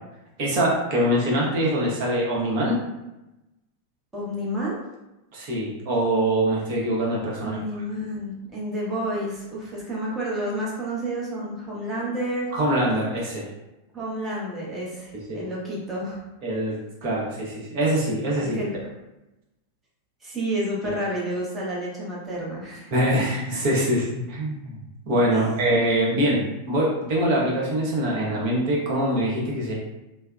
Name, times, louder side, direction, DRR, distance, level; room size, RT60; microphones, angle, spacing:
voice 1, 0.4-2.8 5.3-7.6 12.5-13.5 15.1-15.4 16.4-18.6 22.9-24.8 25.1-29.7, right 1 dB, 45° right, -4 dB, 0.9 m, -24 dB
voice 2, 4.1-4.8 7.4-12.5 13.9-16.2 18.4-18.9 20.2-23.2 25.3-25.4, right 1 dB, 15° right, -5 dB, 0.9 m, -30 dB
3.2 x 2.0 x 2.4 m, 0.96 s
figure-of-eight pair, 90°, 0 cm